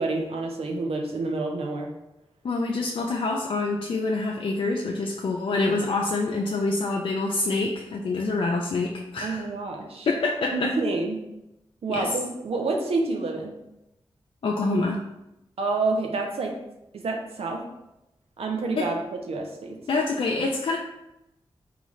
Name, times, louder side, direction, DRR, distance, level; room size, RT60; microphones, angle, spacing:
voice 1, 0.0-1.9 9.2-10.1 10.5-11.2 11.8-13.5 15.6-16.6 16.9-17.6 18.4-19.8, right 3 dB, 80° right, 2 dB, 0.6 m, -28 dB
voice 2, 2.4-9.5 10.1-10.7 11.9-12.1 14.4-15.0 18.8-18.9 19.9-20.8, left 3 dB, 60° left, -1 dB, 0.4 m, -26 dB
3.9 x 2.3 x 3.1 m, 0.89 s
cardioid pair, 50°, 10 cm